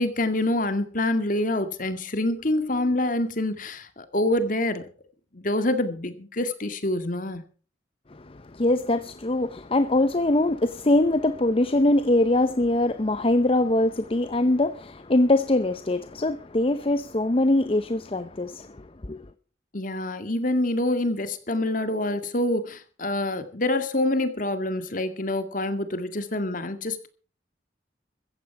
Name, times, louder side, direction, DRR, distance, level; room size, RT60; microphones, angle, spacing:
voice 1, 0.0-4.8 5.3-7.4 19.7-27.1, left 1 dB, 50° left, 2.1 m, -26 dB
voice 2, 8.1-19.2, left 1 dB, 30° left, 0.7 m, -23 dB
15.0 x 15.0 x 4.6 m
head